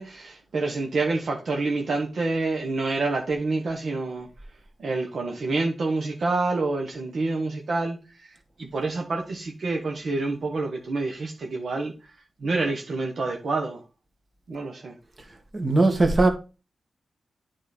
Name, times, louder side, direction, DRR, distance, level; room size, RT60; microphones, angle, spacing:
voice 1, 0.0-4.3 4.8-8.3 8.6-12.1 12.4-13.8 14.5-14.9, right 3 dB, 70° right, 1.3 m, -27 dB
voice 2, 15.5-16.3, right 2 dB, 40° right, 1.9 m, -19 dB
9.0 x 3.9 x 5.1 m
cardioid pair, 50°, 0 cm